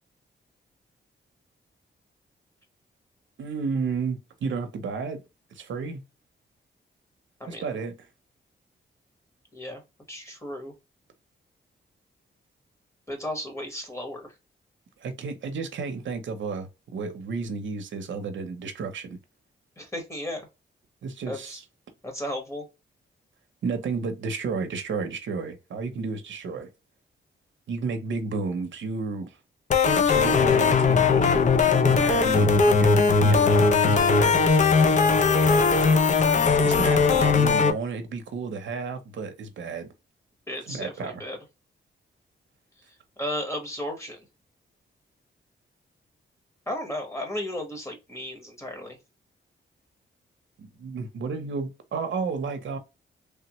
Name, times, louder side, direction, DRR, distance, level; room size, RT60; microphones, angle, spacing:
voice 1, 3.4-5.2 5.5-6.0 7.5-7.9 15.0-19.2 21.0-21.6 23.6-26.7 27.7-29.4 30.0-31.3 31.8-32.9 33.2-34.4 34.8-35.0 36.6-39.9 40.6-41.2 50.6-52.8, right 4 dB, 75° right, 0.7 m, -32 dB
voice 2, 10.1-10.7 13.1-14.3 19.8-20.4 21.3-21.6 22.0-22.6 40.5-41.4 43.2-44.2 46.7-49.0, left 1 dB, 15° left, 1.1 m, -34 dB
sound 1, 29.7-37.7, left 4 dB, 40° left, 0.5 m, -19 dB
3.3 x 2.1 x 2.9 m
wide cardioid pair, 115°, 20 cm